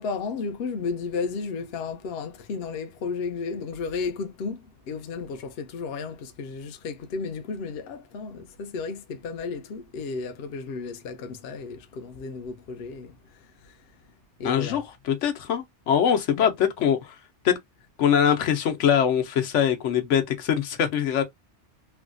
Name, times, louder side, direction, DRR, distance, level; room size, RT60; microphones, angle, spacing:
voice 1, 0.0-13.8 14.4-14.8 16.3-16.5, left 4 dB, 65° left, 0.8 m, -33 dB
voice 2, 14.4-17.1 17.4-17.6 18.0-21.2, left 8 dB, 85° left, 1.0 m, -23 dB
3.4 x 2.2 x 2.5 m
omnidirectional pair, 1.2 m